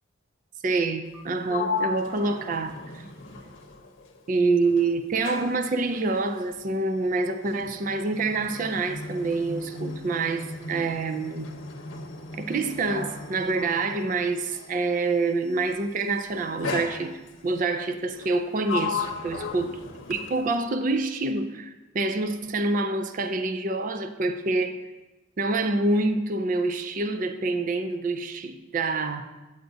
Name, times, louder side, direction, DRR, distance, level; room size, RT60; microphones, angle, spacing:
voice 1, 0.6-3.0 4.3-11.5 12.3-19.7 20.1-24.8 25.4-29.2, right 3 dB, 40° right, 8 dB, 0.3 m, -27 dB
Sliding door, 1.0-4.3 4.6-14.8 15.7-16.0 16.6-17.5 18.1-20.7, left 4 dB, 70° left, 0.8 m, -36 dB
8.9 x 8.0 x 2.6 m, 1.1 s
head